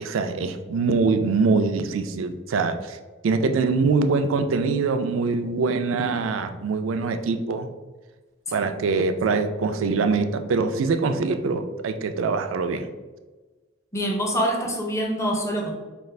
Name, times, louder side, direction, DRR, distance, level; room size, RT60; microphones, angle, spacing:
voice 1, 0.0-3.0 3.2-7.7 8.5-12.9, right 4 dB, 80° right, 9 dB, 0.4 m, -23 dB
voice 2, 13.9-15.7, equal, 15° left, 0 dB, 0.6 m, -25 dB
5.1 x 2.4 x 3.2 m, 1.3 s
head